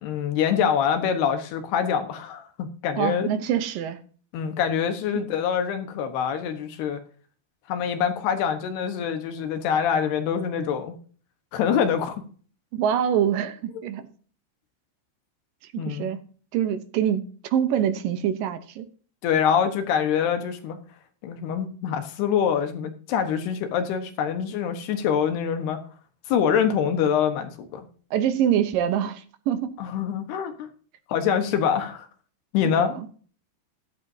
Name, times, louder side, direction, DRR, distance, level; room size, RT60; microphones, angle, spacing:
voice 1, 0.0-3.3 4.3-7.0 7.7-10.9 11.5-12.1 15.8-16.1 19.2-20.8 21.2-25.8 26.3-27.9 29.8-30.7 31.1-32.1 32.5-32.9, left 8 dB, 80° left, 3.3 m, -25 dB
voice 2, 3.0-4.0 5.2-5.3 12.7-14.1 15.7-16.2 16.5-18.9 28.1-29.7 32.7-33.1, right 9 dB, 70° right, 2.3 m, -25 dB
14.0 x 12.0 x 2.8 m
omnidirectional pair, 4.6 m